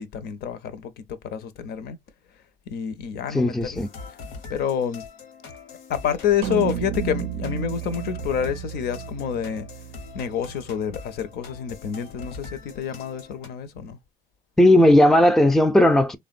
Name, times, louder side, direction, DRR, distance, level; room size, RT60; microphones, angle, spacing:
voice 1, 0.0-2.0 2.7-3.9 4.5-5.1 5.9-9.7 10.1-14.0, left 8 dB, 70° left, 0.6 m, -28 dB
voice 2, 3.3-3.9 14.6-16.2, left 1 dB, ahead, 0.4 m, -16 dB
sound 1, 3.8-13.5, left 5 dB, 90° left, 1.0 m, -42 dB
sound 2, 6.4-10.9, right 9 dB, 85° right, 0.4 m, -33 dB
3.4 x 2.1 x 2.4 m
cardioid pair, 110°, 17 cm